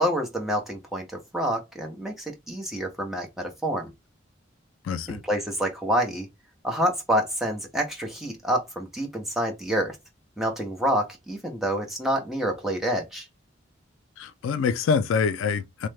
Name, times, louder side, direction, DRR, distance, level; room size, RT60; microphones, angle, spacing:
voice 1, 0.0-3.9 5.1-6.3 6.6-10.0 10.4-13.3, equal, ahead, 0.7 m, -27 dB
voice 2, 4.8-5.2 14.2-15.9, left 5 dB, 85° left, 0.3 m, -25 dB
3.1 x 2.1 x 3.2 m
head